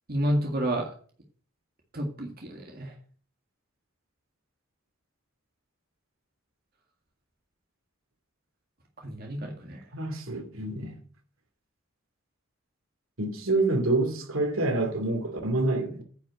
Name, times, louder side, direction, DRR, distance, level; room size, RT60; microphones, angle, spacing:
voice 1, 0.1-0.9 1.9-2.9 9.0-9.9, right 1 dB, 45° right, 2.0 m, -30 dB
voice 2, 9.9-11.0 13.2-16.0, right 2 dB, 75° right, 2.5 m, -27 dB
9.9 x 6.1 x 7.6 m
head